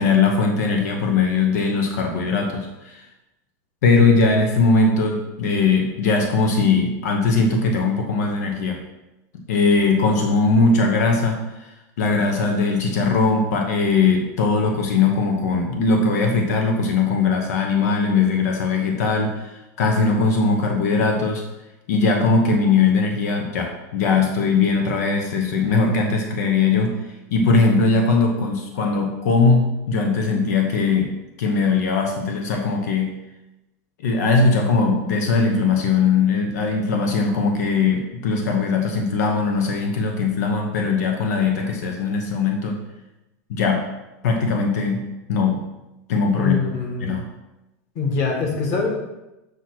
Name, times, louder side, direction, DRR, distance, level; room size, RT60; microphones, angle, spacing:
voice 1, 0.0-3.1 3.8-8.8 9.5-11.7 12.0-21.4 21.9-26.9 27.3-31.1 31.4-33.1 34.0-42.8 43.5-43.8 44.2-45.0 45.3-45.6 46.1-46.6 47.0-47.2, left 4 dB, 85° left, 2 dB, 1.1 m, -20 dB
voice 2, 46.4-47.2 47.9-48.9, left 3 dB, 40° left, 0 dB, 1.6 m, -24 dB
7.9 x 3.0 x 6.1 m, 0.97 s
supercardioid pair, 160°, 9 cm